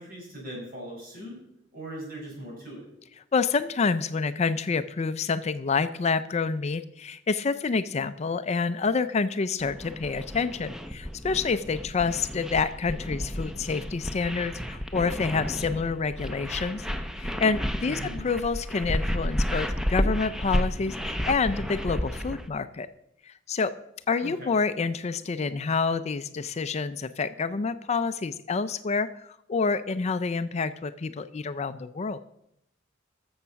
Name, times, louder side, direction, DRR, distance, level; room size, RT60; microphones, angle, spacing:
voice 1, 0.0-1.4 1.7-2.8 17.8-18.2 24.2-24.5, right 1 dB, 50° right, -3 dB, 5.8 m, -39 dB
voice 2, 3.3-16.9 17.2-22.9 23.3-23.7 24.1-29.1 29.5-32.2, left 4 dB, 35° left, 13 dB, 0.4 m, -28 dB
sound 1, 9.6-22.5, equal, 5° right, 0.7 m, -32 dB
13.0 x 7.2 x 5.8 m, 0.79 s
head